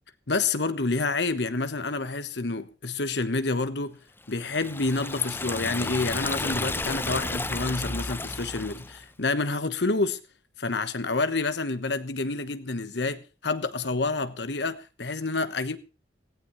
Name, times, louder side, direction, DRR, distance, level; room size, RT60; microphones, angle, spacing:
voice 1, 0.3-4.0 4.3-10.2 10.6-15.8, left 3 dB, 70° left, 1.2 m, -28 dB
Liquid, 4.3-9.0, left 2 dB, 15° left, 0.7 m, -32 dB
17.0 x 14.5 x 3.1 m
head